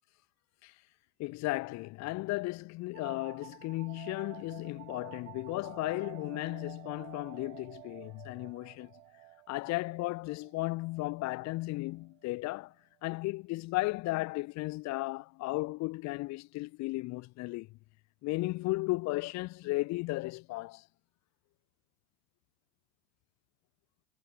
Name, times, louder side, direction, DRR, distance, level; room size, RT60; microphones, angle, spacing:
voice 1, 1.2-8.9 9.5-12.7 13.0-17.7 18.2-20.8, left 21 dB, 35° left, 2.1 m, -35 dB
sound 1, 2.9-12.3, right 25 dB, 45° right, 2.0 m, -51 dB
hypercardioid pair, 115°, 49 cm